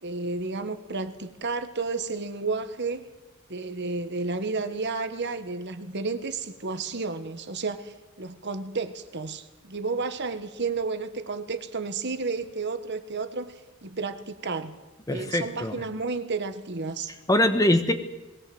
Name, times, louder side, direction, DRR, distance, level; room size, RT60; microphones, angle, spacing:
voice 1, 0.0-3.0 3.5-13.5 13.8-14.8 15.1-17.1, right 4 dB, 50° right, 10 dB, 1.4 m, -32 dB
voice 2, 15.1-15.8 17.3-17.9, left 1 dB, 15° left, 9 dB, 1.2 m, -22 dB
21.0 x 17.0 x 7.8 m, 1.1 s
head